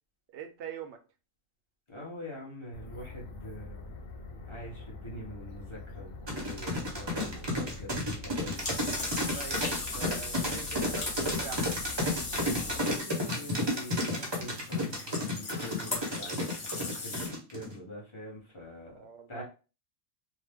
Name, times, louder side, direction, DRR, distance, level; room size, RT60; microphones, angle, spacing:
voice 1, 0.3-1.0 9.2-11.7 18.8-19.4, right 8 dB, 65° right, 7 dB, 0.8 m, -44 dB
voice 2, 1.9-3.9 4.5-8.7 12.6-18.9 19.3-19.4, left 1 dB, 25° left, -3 dB, 0.9 m, -45 dB
sound 1, 2.7-12.8, left 3 dB, 85° left, 1.1 m, -45 dB
sound 2, 6.3-17.7, left 1 dB, 30° right, 0.6 m, -31 dB
sound 3, 8.5-17.3, left 3 dB, 60° left, 1.3 m, -39 dB
2.9 x 2.1 x 3.4 m, 0.33 s
omnidirectional pair, 1.4 m